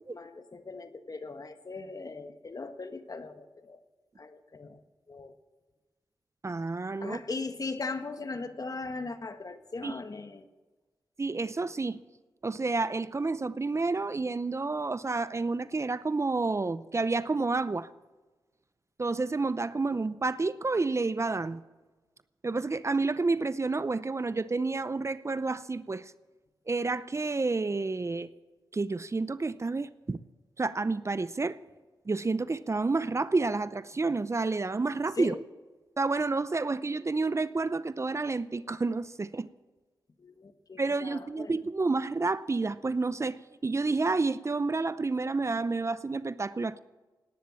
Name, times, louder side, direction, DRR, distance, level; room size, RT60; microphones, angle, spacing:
voice 1, 0.1-3.8 4.2-4.8 5.1-5.3 7.0-10.4 35.2-35.4 40.2-41.6, left 3 dB, 45° left, 1.5 m, -39 dB
voice 2, 6.4-7.2 9.8-10.0 11.2-12.0 12.4-17.9 19.0-21.6 22.4-26.1 26.7-28.3 28.7-30.2 30.6-31.6 32.1-35.3 36.0-39.5 40.8-46.8, right 3 dB, 35° right, 0.6 m, -30 dB
18.0 x 10.5 x 7.0 m
cardioid pair, 50°, 8 cm